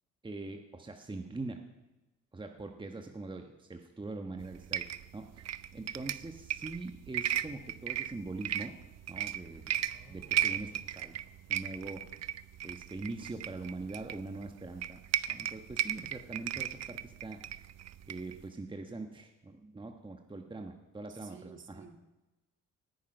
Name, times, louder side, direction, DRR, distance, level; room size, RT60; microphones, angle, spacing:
voice 1, 0.2-1.6 2.3-4.9 5.1-5.4 5.7-8.8 9.1-9.7 10.1-11.2 11.5-12.1 12.6-15.0 15.3-17.4 18.1-21.9, right 3 dB, 15° right, 4 dB, 1.2 m, -42 dB
sound 1, 4.4-18.5, right 11 dB, 60° right, 0.6 m, -36 dB
sound 2, 9.7-12.2, equal, 10° left, 4.2 m, -62 dB
voice 2, 21.1-22.0, right 5 dB, 40° right, 6 dB, 1.9 m, -52 dB
18.5 x 9.5 x 5.4 m, 1.0 s
cardioid pair, 90°, 30 cm